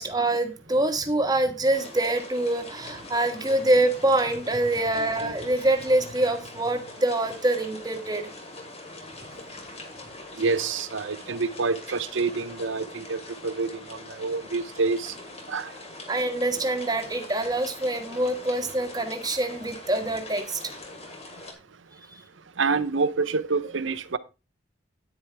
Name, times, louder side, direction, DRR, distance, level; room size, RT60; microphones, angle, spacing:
voice 1, 0.0-8.3 16.1-20.7, right 1 dB, 20° right, 1.6 m, -25 dB
sound 1, 1.7-21.5, left 2 dB, 35° left, 2.8 m, -43 dB
voice 2, 10.4-15.1 15.5-15.7 22.6-24.2, right 4 dB, 75° right, 0.8 m, -27 dB
9.9 x 9.7 x 3.5 m
head